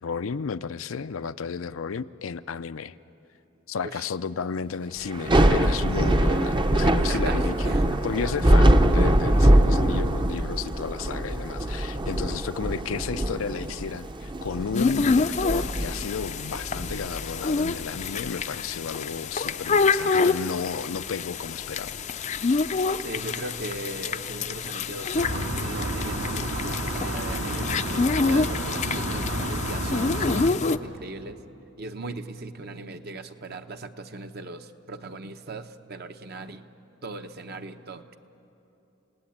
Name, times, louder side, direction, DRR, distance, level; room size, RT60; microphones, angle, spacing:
voice 1, 0.0-2.9 3.7-7.7 8.0-21.9, left 5 dB, 85° left, 13 dB, 0.5 m, -32 dB
Thunder / Rain, 5.1-18.3, right 1 dB, 25° right, 0.7 m, -23 dB
sound 1, 14.7-30.8, left 4 dB, 35° left, 0.5 m, -27 dB
voice 2, 23.0-25.2 25.6-31.4 31.8-36.7 37.0-38.0, right 2 dB, 50° right, 7 dB, 0.9 m, -38 dB
sound 2, 25.1-30.5, right 1 dB, 70° right, 1.7 m, -30 dB
29.0 x 18.0 x 8.7 m, 2.9 s
head